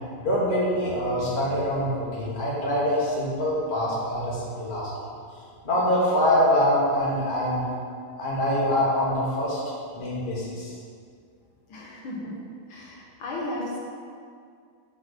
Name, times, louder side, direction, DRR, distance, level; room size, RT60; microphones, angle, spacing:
voice 1, 0.2-4.9 5.6-7.7 8.2-9.6 9.9-10.7, equal, 25° left, -6 dB, 1.4 m, -24 dB
voice 2, 11.7-12.3 12.7-13.8, left 1 dB, 70° left, -4 dB, 1.8 m, -34 dB
5.9 x 4.2 x 5.9 m, 2.2 s
omnidirectional pair, 2.3 m